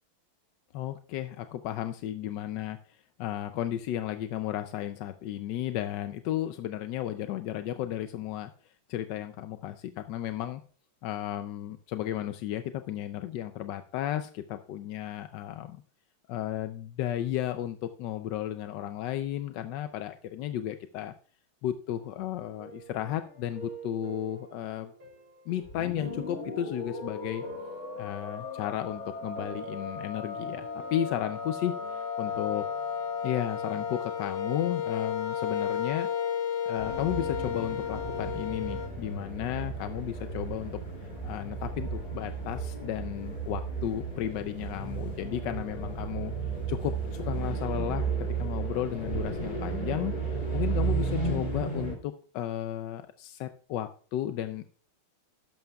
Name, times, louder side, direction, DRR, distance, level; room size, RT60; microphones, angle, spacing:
voice 1, 0.7-10.6 11.0-15.8 16.3-21.1 21.6-24.9 25.5-27.4 28.0-32.6 33.2-36.1 36.7-40.8 41.2-46.3 46.7-48.1 48.4-54.7, left 12 dB, 70° left, 9 dB, 1.1 m, -34 dB
sound 1, 21.9-34.0, right 5 dB, 75° right, 4.1 m, -49 dB
sound 2, 25.7-38.9, left 7 dB, 40° left, 1.4 m, -34 dB
sound 3, 36.8-51.9, right 4 dB, 25° left, 2.9 m, -33 dB
12.5 x 10.5 x 2.3 m, 0.43 s
omnidirectional pair, 2.3 m